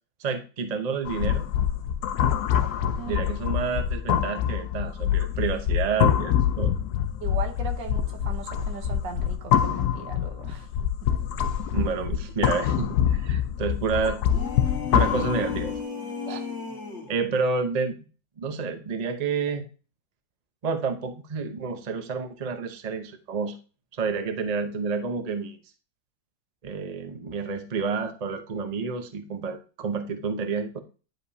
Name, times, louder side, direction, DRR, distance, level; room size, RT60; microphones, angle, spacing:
voice 1, 0.2-1.5 3.0-6.7 11.7-14.2 14.9-15.7 16.3-16.4 17.1-18.0 18.4-19.6 20.6-23.6 23.9-25.6 26.6-30.8, right 5 dB, 35° right, 0.7 m, -29 dB
sound 1, 1.0-15.8, left 9 dB, 70° left, 1.1 m, -25 dB
voice 2, 7.2-10.7 11.0-11.1 16.3-16.4, right 5 dB, 85° right, 1.8 m, -38 dB
sound 2, 14.2-17.2, left 5 dB, 40° left, 1.8 m, -33 dB
10.5 x 5.0 x 2.8 m
omnidirectional pair, 1.9 m